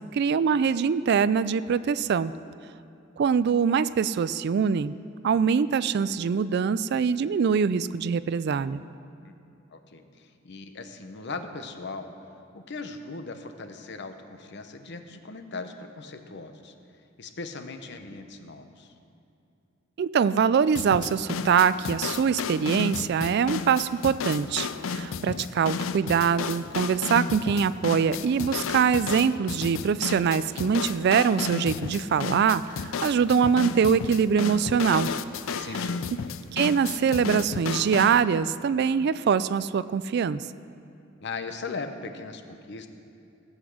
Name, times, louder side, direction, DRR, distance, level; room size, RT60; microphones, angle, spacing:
voice 1, 0.0-2.3 3.2-4.9 5.2-8.8 20.0-35.1 36.5-40.4, right 6 dB, 55° right, 16 dB, 0.3 m, -23 dB
voice 2, 9.7-12.1 12.5-16.7 17.2-18.9 35.5-36.1 41.2-42.9, left 3 dB, 60° left, 7 dB, 0.9 m, -39 dB
sound 1, 20.7-38.2, left 5 dB, 80° left, 0.5 m, -33 dB
16.0 x 8.1 x 6.3 m, 2.6 s
head